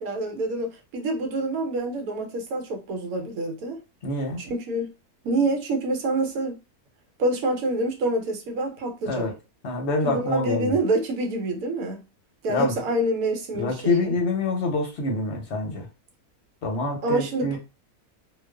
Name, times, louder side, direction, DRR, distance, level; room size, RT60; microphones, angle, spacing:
voice 1, 0.0-3.8 4.4-4.9 5.2-6.6 7.2-9.3 10.0-12.0 12.4-14.1 17.0-17.6, right 2 dB, 75° right, 1.1 m, -27 dB
voice 2, 4.0-4.4 9.1-9.3 9.6-10.7 12.5-12.7 13.5-15.9 16.6-17.6, left 3 dB, 55° left, 0.9 m, -26 dB
2.5 x 2.2 x 2.2 m
omnidirectional pair, 1.6 m